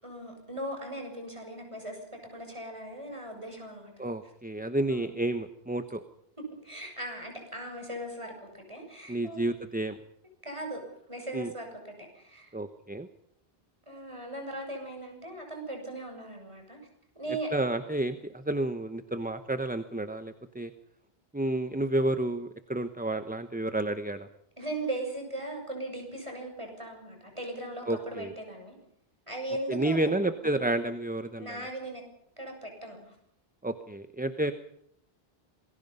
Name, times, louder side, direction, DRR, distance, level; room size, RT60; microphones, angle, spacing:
voice 1, 0.0-3.9 4.9-5.1 6.6-9.4 10.4-10.8 11.1-12.5 13.9-16.8 17.2-17.7 24.6-28.8 29.3-30.2 31.4-32.0 32.4-33.2, right 1 dB, 30° right, 3 dB, 6.9 m, -38 dB
voice 2, 4.0-6.0 9.1-10.0 11.3-11.5 12.5-13.1 17.5-20.7 21.3-24.3 27.9-28.3 29.7-31.6 33.6-34.5, right 1 dB, 10° right, 9 dB, 0.9 m, -30 dB
27.0 x 21.5 x 5.5 m, 0.71 s
omnidirectional pair, 1.0 m